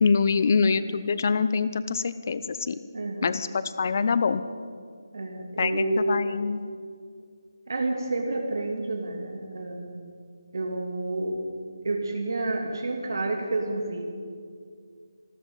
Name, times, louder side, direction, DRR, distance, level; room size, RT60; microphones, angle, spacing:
voice 1, 0.0-2.8 3.2-4.4 5.6-6.6, left 5 dB, 40° left, 13 dB, 0.7 m, -25 dB
voice 2, 2.9-3.3 5.1-6.3 7.7-10.1 10.5-11.4 11.8-14.0, right 2 dB, 60° right, 2 dB, 2.8 m, -29 dB
26.5 x 13.0 x 4.0 m, 2.1 s
figure-of-eight pair, 160°, 2 cm